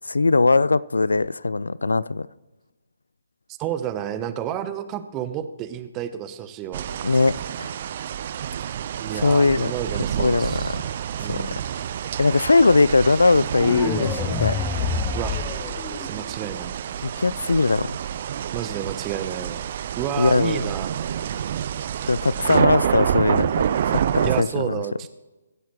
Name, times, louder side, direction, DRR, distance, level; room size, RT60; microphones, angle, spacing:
voice 1, 0.1-2.3 7.0-7.8 9.2-9.7 10.2-10.6 11.3-11.4 12.2-14.7 17.0-17.9 20.2-20.6 22.1-24.8, left 3 dB, 75° left, 21 dB, 0.4 m, -20 dB
voice 2, 3.6-6.9 9.0-10.8 11.2-11.6 15.1-15.4 16.0-16.7 18.5-19.7 20.0-20.9 24.2-25.1, right 10 dB, 20° right, 11 dB, 1.0 m, -30 dB
sound 1, 6.7-24.4, right 9 dB, 40° right, 0.5 m, -28 dB
sound 2, 13.5-16.5, left 5 dB, 10° left, 0.8 m, -27 dB
23.0 x 10.5 x 3.2 m, 1.1 s
figure-of-eight pair, 140°, 0 cm